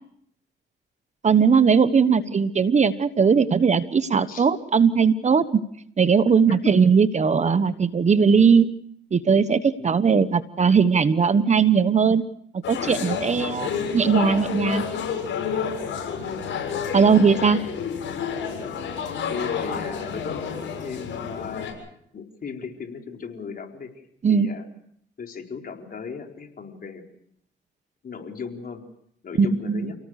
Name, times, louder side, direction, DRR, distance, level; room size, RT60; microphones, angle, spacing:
voice 1, 1.2-5.6 6.0-8.7 9.1-12.2 12.7-14.8 16.9-17.6 24.2-24.5 29.4-29.9, right 6 dB, 35° right, 12 dB, 1.2 m, -19 dB
sound 1, 12.6-21.7, left 7 dB, 75° left, 7.4 m, -30 dB
voice 2, 13.4-13.8 19.3-21.7 22.1-23.9 24.3-24.6 25.2-27.1 28.0-28.8 29.2-30.0, left 5 dB, 45° left, 2 dB, 4.5 m, -36 dB
30.0 x 18.0 x 6.6 m, 0.71 s
cardioid pair, 90°, 20 cm